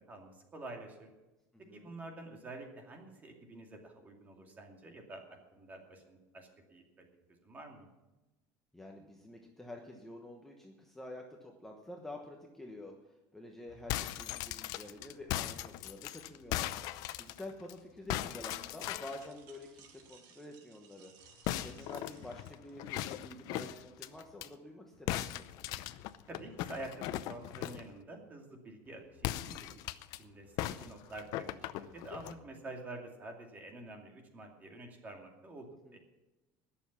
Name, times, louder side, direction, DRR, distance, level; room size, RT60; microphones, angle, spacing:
voice 1, 0.1-1.1 1.7-5.2 5.5-6.8 7.4-7.9 26.3-29.6 30.1-35.7 35.9-36.0, right 2 dB, 25° right, 2 dB, 2.4 m, -48 dB
voice 2, 8.7-16.7 17.2-25.6 35.8-36.0, left 1 dB, 5° left, 1 dB, 1.1 m, -49 dB
sound 1, 13.7-17.7 18.1-19.3 21.4-24.5 25.1-27.9 29.2-30.2 30.6-32.4, left 14 dB, 60° left, 0.6 m, -38 dB
sound 2, 18.6-23.0, right 7 dB, 60° right, 2.0 m, -61 dB
20.5 x 7.1 x 5.9 m, 1.0 s
cardioid pair, 155°, 7 cm